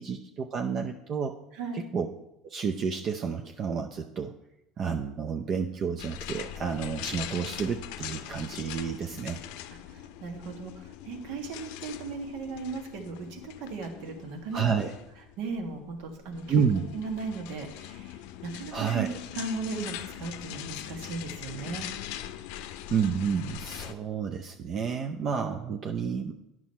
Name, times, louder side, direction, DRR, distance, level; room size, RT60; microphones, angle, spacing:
voice 1, 0.0-1.4 1.7-2.1 2.4-4.3 4.8-9.4 14.5-14.9 16.5-16.8 18.7-19.1 22.9-26.3, right 6 dB, 40° right, 4 dB, 0.6 m, -30 dB
voice 2, 1.5-1.9 9.9-14.8 15.4-16.4 16.9-19.1 19.3-21.9, right 4 dB, 70° right, 4 dB, 1.5 m, -37 dB
sound 1, 6.0-23.9, left 12 dB, 75° left, 0.5 m, -42 dB
9.1 x 6.2 x 4.3 m, 0.88 s
supercardioid pair, 110°, 0 cm